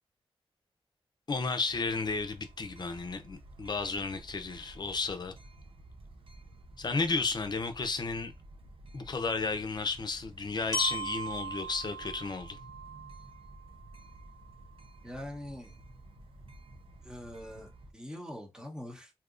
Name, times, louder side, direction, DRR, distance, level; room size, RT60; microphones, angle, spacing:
voice 1, 1.3-5.3 6.8-8.3 8.9-12.6, left 4 dB, 45° left, 0.6 m, -33 dB
sound 1, 1.7-17.9, right 1 dB, 65° right, 0.7 m, -52 dB
Glockenspiel, 10.7-14.7, right 1 dB, 30° left, 1.0 m, -39 dB
voice 2, 15.0-15.8 17.0-19.1, left 1 dB, 5° right, 1.0 m, -43 dB
3.5 x 2.8 x 2.5 m
wide cardioid pair, 90°, 10 cm